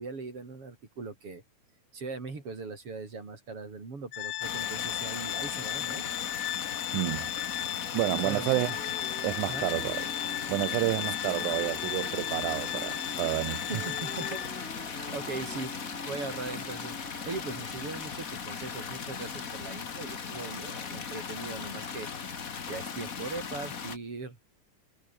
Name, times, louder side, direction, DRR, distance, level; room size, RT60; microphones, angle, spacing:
voice 1, 0.0-1.4 1.9-6.0 8.2-8.6 9.5-9.7 13.6-14.4 14.8-15.7 16.1-17.0 17.3-22.4 22.7-24.4, right 4 dB, 45° right, 6.1 m, -40 dB
Organ, 4.1-14.8, left 14 dB, 70° left, 1.5 m, -35 dB
sound 1, 4.4-24.0, left 6 dB, 35° left, 1.4 m, -38 dB
voice 2, 6.9-7.3 7.9-8.7 9.2-10.1 10.5-13.8, right 22 dB, 85° right, 2.0 m, -30 dB
sound 2, 8.5-19.3, left 1 dB, 10° left, 0.5 m, -46 dB
omnidirectional pair, 3.5 m